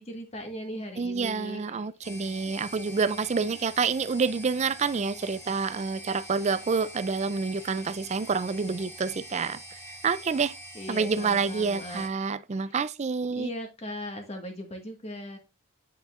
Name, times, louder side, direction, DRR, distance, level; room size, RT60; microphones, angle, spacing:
voice 1, 0.0-1.9 10.7-12.1 12.5-12.8 13.4-15.4, equal, 30° left, 1.6 m, -39 dB
voice 2, 1.0-10.5 10.9-13.5, right 5 dB, 30° right, 0.4 m, -28 dB
sound 1, 2.0-12.1, equal, 15° left, 1.3 m, -45 dB
9.3 x 5.3 x 2.5 m
head